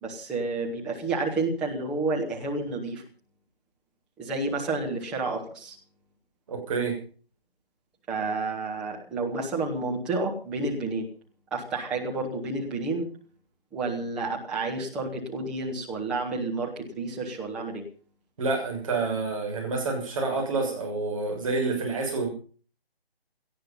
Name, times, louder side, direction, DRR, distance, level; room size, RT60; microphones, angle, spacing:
voice 1, 0.0-3.0 4.2-5.7 8.1-11.1 11.5-13.1 13.7-17.8, right 3 dB, ahead, -3 dB, 0.8 m, -30 dB
voice 2, 6.5-7.0 18.4-22.3, right 3 dB, 30° right, 1 dB, 6.7 m, -28 dB
18.0 x 13.5 x 5.6 m, 0.41 s
figure-of-eight pair, 150°, 31 cm